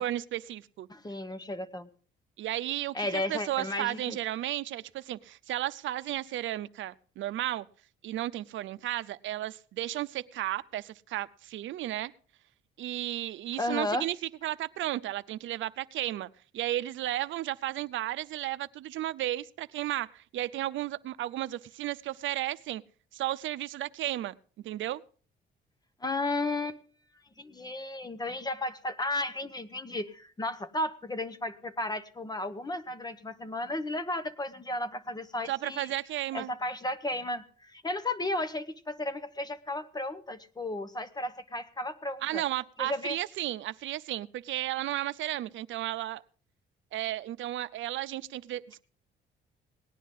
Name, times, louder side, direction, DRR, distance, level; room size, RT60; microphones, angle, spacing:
voice 1, 0.0-0.9 2.4-7.7 8.0-12.1 12.8-14.2 14.4-16.3 16.5-22.8 23.1-25.0 35.5-36.5 42.2-46.2 46.9-48.8, right 14 dB, 75° right, 15 dB, 0.6 m, -34 dB
voice 2, 0.9-1.9 2.9-4.2 13.6-14.1 26.0-26.8 27.4-35.9 36.3-42.4 42.8-43.2, left 2 dB, 20° left, 12 dB, 0.8 m, -34 dB
18.5 x 10.0 x 3.7 m, 0.41 s
cardioid pair, 90°, 20 cm